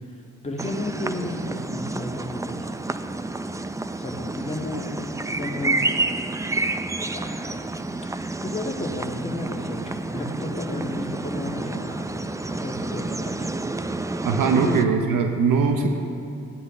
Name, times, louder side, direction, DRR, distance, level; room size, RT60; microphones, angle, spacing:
voice 1, 0.4-2.7 4.0-4.9 5.3-5.9 7.1-7.6 8.4-12.0 12.5-13.5 14.5-14.7, left 1 dB, 20° left, -1 dB, 1.8 m, -32 dB
sound 1, 0.6-14.8, right 2 dB, 10° right, 0.4 m, -29 dB
voice 2, 14.2-15.9, right 5 dB, 75° right, 4 dB, 0.9 m, -21 dB
16.0 x 9.7 x 3.2 m, 2.6 s
supercardioid pair, 65°, 33 cm